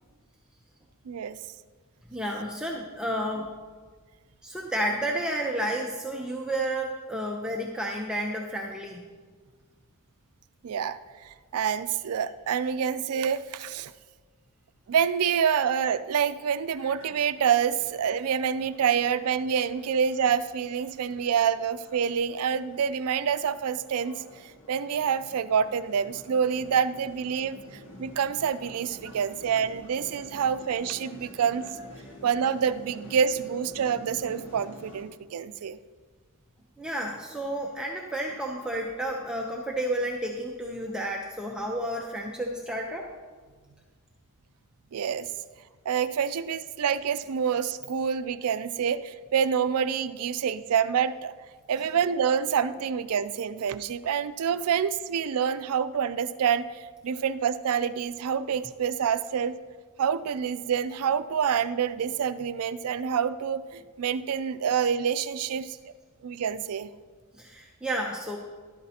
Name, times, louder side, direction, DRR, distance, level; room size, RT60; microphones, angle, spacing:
voice 1, 1.1-1.4 10.6-13.9 14.9-24.1 24.7-31.6 32.2-35.8 44.9-45.3 45.9-51.3 51.7-59.6 60.0-65.8 66.2-66.9, right 7 dB, 75° right, 13 dB, 0.4 m, -27 dB
voice 2, 2.1-3.5 4.4-9.0 21.1-21.2 36.8-43.1 51.8-51.9 65.7-65.8 67.4-68.4, right 1 dB, 5° right, -1 dB, 0.6 m, -31 dB
sound 1, 16.7-35.0, equal, 60° left, 1.9 m, -49 dB
12.5 x 11.5 x 2.8 m, 1.5 s
head